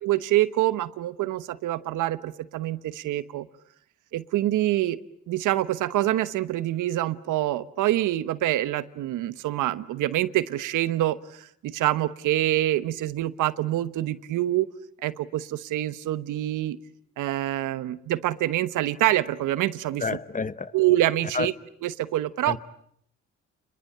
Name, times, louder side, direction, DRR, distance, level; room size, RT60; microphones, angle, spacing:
voice 1, 0.0-3.5 4.1-5.0 5.3-14.7 15.0-16.8 17.2-20.2 20.7-21.5 21.8-22.6, right 14 dB, 85° right, 1.1 m, -26 dB
voice 2, 20.0-20.7 21.3-21.5 22.5-22.6, left 4 dB, 25° left, 1.1 m, -29 dB
29.5 x 21.5 x 8.7 m
cardioid pair, 90°, 30 cm